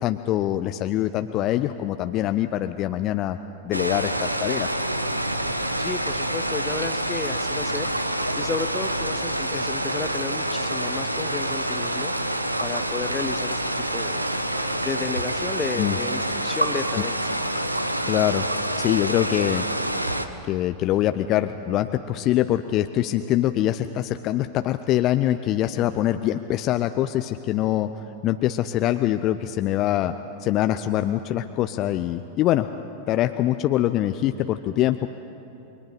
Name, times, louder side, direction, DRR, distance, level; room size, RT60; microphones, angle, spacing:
voice 1, 0.0-3.4 3.6-4.7 15.8-16.0 18.1-18.4 18.8-19.7 20.4-30.1 30.4-32.7 33.1-35.1, left 13 dB, 35° left, 9 dB, 0.6 m, -24 dB
sound 1, 3.7-20.3, right 1 dB, 85° right, 1.0 m, -27 dB
voice 2, 5.8-7.9 8.4-12.1 12.6-14.2 14.8-17.2, left 5 dB, 20° left, 13 dB, 0.9 m, -33 dB
29.0 x 23.0 x 5.1 m, 2.9 s
figure-of-eight pair, 90°, 0 cm